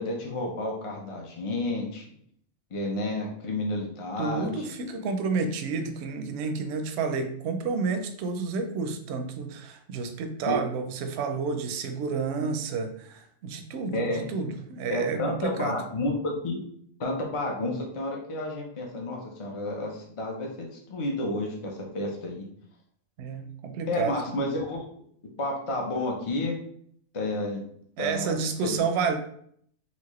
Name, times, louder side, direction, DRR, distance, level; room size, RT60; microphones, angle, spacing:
voice 1, 0.0-2.0 2.7-4.6 10.5-10.6 13.9-14.2 14.9-16.6 17.0-22.5 23.9-24.9 25.4-26.6 27.1-27.6 28.0-28.8, left 2 dB, 45° left, 0 dB, 0.4 m, -31 dB
voice 2, 4.2-15.8 23.2-24.2 28.0-29.2, right 4 dB, 65° right, 6 dB, 0.7 m, -30 dB
4.3 x 2.4 x 3.0 m, 0.65 s
omnidirectional pair, 1.4 m